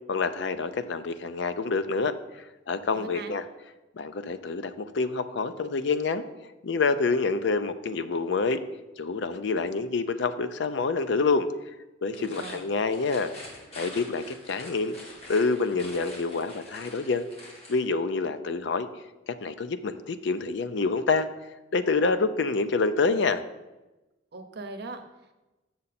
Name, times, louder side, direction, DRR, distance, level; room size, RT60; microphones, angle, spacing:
voice 1, 0.1-3.4 4.0-6.2 6.6-8.6 9.0-11.5 12.0-13.3 13.8-15.0 15.3-17.3 17.7-18.9 19.3-21.3 21.7-23.4, left 4 dB, 65° left, 11 dB, 0.5 m, -27 dB
voice 2, 2.9-3.3 12.2-12.6 24.3-25.3, right 3 dB, 60° right, 6 dB, 0.8 m, -40 dB
sound 1, 12.1-17.9, left 1 dB, 35° left, 1.7 m, -45 dB
7.1 x 6.5 x 4.1 m, 1.1 s
head